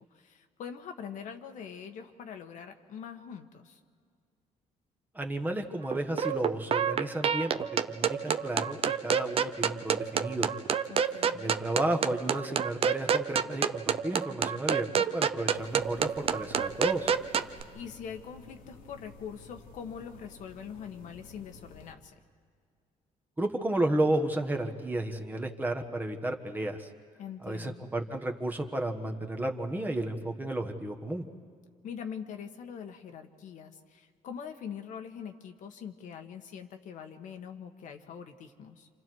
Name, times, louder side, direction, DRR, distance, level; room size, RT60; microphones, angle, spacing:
voice 1, 0.0-3.8 10.9-11.5 17.7-22.1 27.2-27.8 31.8-38.9, left 7 dB, 65° left, 5 dB, 1.5 m, -43 dB
voice 2, 5.1-10.5 11.3-17.1 23.4-26.9 27.4-31.2, right 1 dB, 10° right, 3 dB, 1.4 m, -32 dB
sound 1, 5.9-17.6, right 7 dB, 40° right, 0.7 m, -28 dB
sound 2, 15.5-21.9, left 3 dB, 85° left, 2.3 m, -52 dB
29.0 x 27.0 x 4.7 m, 2.1 s
cardioid pair, 120°, 14 cm